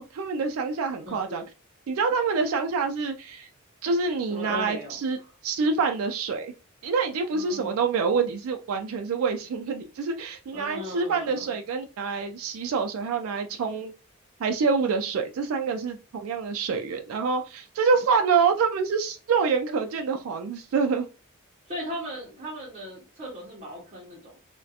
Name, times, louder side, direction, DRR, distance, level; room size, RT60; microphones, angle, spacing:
voice 1, 0.0-1.4 1.9-3.5 3.8-5.2 5.4-6.5 6.8-13.9 14.4-21.1, right 5 dB, 75° right, 0.3 m, -26 dB
voice 2, 1.0-1.4 4.3-5.3 7.3-7.8 10.5-11.5 21.7-24.4, left 1 dB, 30° right, 0.6 m, -38 dB
2.4 x 2.1 x 2.7 m
head